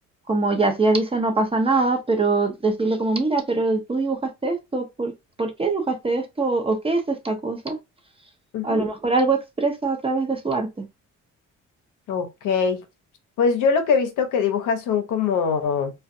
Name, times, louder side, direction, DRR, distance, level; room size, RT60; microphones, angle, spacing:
voice 1, 0.3-5.1 5.4-7.8 8.6-10.9, right 3 dB, 20° right, 0.6 m, -23 dB
voice 2, 8.5-8.8 12.1-12.8 13.4-15.9, left 6 dB, 80° left, 0.7 m, -22 dB
2.5 x 2.3 x 2.5 m
cardioid pair, 90°, 30 cm